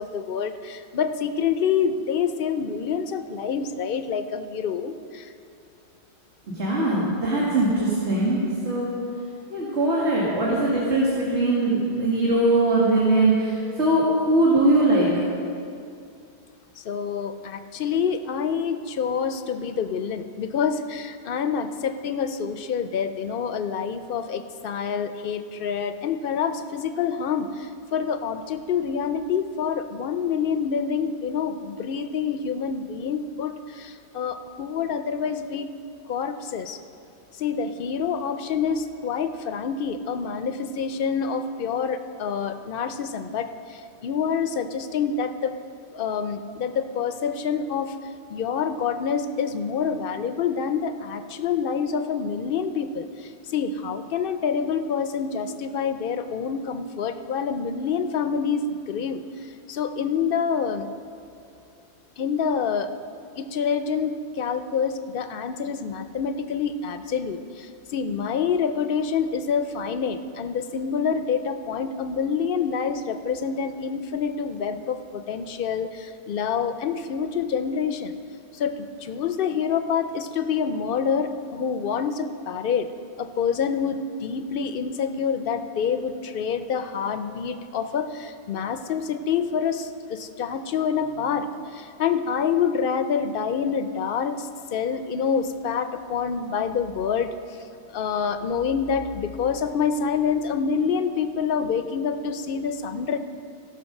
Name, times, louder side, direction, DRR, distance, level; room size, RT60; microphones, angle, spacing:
voice 1, 0.0-5.3 16.8-35.7 36.1-36.8 37.3-45.5 45.9-47.9 48.3-59.2 59.7-60.9 62.2-62.9 63.4-78.1 78.5-82.9 83.2-97.6 97.9-103.2, left 6 dB, 60° left, 10 dB, 0.7 m, -27 dB
voice 2, 6.5-8.9 9.5-15.2, right 2 dB, 85° right, -6 dB, 2.1 m, -21 dB
15.5 x 5.7 x 6.4 m, 2.5 s
omnidirectional pair, 1.1 m